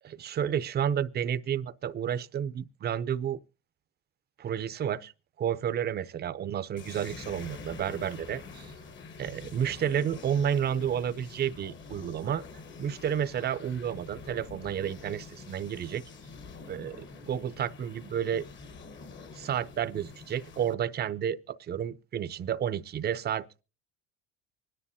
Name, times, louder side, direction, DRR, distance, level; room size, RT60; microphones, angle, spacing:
voice 1, 0.0-3.4 4.4-5.1 5.4-8.7 9.2-12.4 12.8-16.0 16.7-18.5 19.3-23.6, right 9 dB, 30° right, 0.6 m, -31 dB
sound 1, 6.8-20.7, left 4 dB, 35° left, 1.1 m, -46 dB
24.5 x 9.9 x 2.8 m
supercardioid pair, 115°, 33 cm